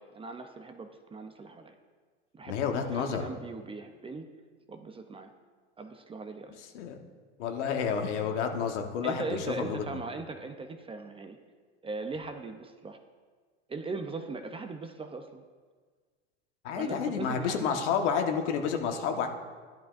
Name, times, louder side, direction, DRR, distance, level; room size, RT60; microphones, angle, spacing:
voice 1, 0.0-1.8 2.3-2.6 2.9-4.3 4.7-5.3 5.8-6.5 9.0-11.4 11.8-13.0 13.7-15.4 16.7-17.8, right 3 dB, 15° right, 6 dB, 0.5 m, -39 dB
voice 2, 2.4-3.2 6.7-7.0 7.4-9.2 9.6-10.0 16.6-19.3, left 6 dB, 80° left, 4 dB, 1.4 m, -30 dB
12.5 x 11.0 x 2.6 m, 1.5 s
supercardioid pair, 110°, 35 cm